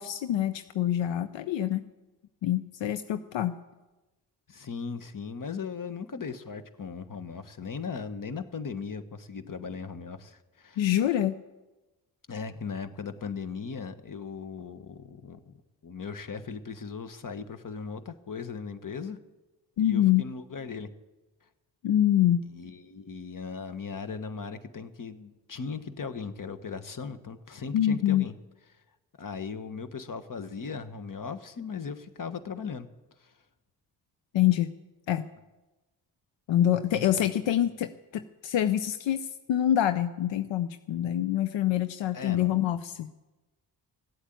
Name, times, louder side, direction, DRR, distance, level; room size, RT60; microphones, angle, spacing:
voice 1, 0.0-1.8 2.4-3.6 10.8-11.4 19.8-20.2 21.8-22.5 27.7-28.3 34.3-34.7 35.1-35.3 36.5-43.1, left 11 dB, 80° left, 11 dB, 0.6 m, -26 dB
voice 2, 4.5-10.9 12.3-15.6 15.8-19.2 19.8-20.9 22.5-28.3 28.7-28.8 29.2-32.9 33.2-33.3 37.0-37.3 42.1-42.7, left 5 dB, 45° left, 11 dB, 1.3 m, -38 dB
15.5 x 8.1 x 9.2 m, 1.1 s
supercardioid pair, 50°, 45 cm